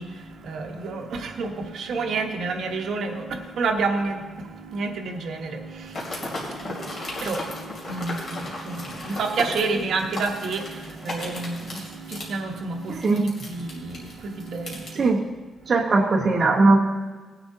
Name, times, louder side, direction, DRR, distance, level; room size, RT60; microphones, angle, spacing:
voice 1, 0.0-15.1, right 3 dB, 55° right, 3 dB, 1.1 m, -30 dB
sound 1, 5.9-14.9, left 1 dB, 40° left, 2.7 m, -35 dB
voice 2, 12.9-13.3 14.9-15.3 15.7-16.8, right 3 dB, 30° right, -1 dB, 0.9 m, -19 dB
18.5 x 10.0 x 2.7 m, 1.4 s
wide cardioid pair, 175°, 0 cm